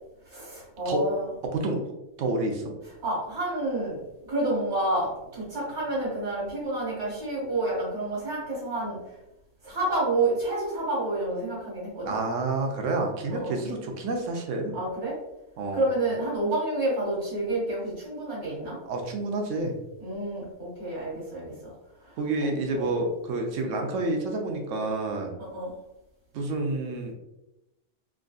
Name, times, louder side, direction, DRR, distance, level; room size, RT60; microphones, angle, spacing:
voice 1, 0.2-1.2 3.0-4.0 4.3-9.0 9.6-12.1 13.3-13.5 14.7-15.2 15.7-18.8 20.0-21.7 22.0-22.2 22.7-23.0 25.4-25.7, right 2 dB, 65° right, -6 dB, 1.8 m, -29 dB
voice 2, 1.4-1.8 2.2-2.7 12.1-14.8 15.6-15.9 18.9-19.7 22.2-25.4 26.3-27.1, right 2 dB, 80° right, 2 dB, 1.0 m, -29 dB
3.6 x 2.4 x 2.3 m, 0.92 s
omnidirectional pair, 1.3 m